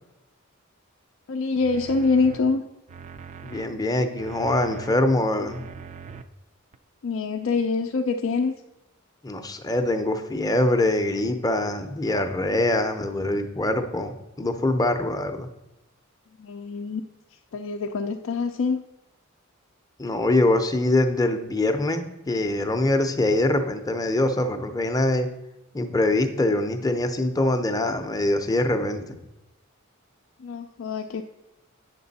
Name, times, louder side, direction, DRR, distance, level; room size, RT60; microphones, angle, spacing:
voice 1, 1.3-2.6 7.0-8.5 16.4-17.0 17.3-18.8 30.4-31.2, left 4 dB, 65° left, 3 dB, 0.4 m, -25 dB
sound 1, 1.6-2.4 2.9-3.7 4.2-5.0 5.4-6.2 6.7-6.8, right 6 dB, 35° right, 0.4 m, -41 dB
voice 2, 3.4-5.6 9.2-15.5 20.0-25.3 25.7-29.2, left 1 dB, 20° left, 7 dB, 0.6 m, -24 dB
8.6 x 6.7 x 4.1 m, 0.95 s
head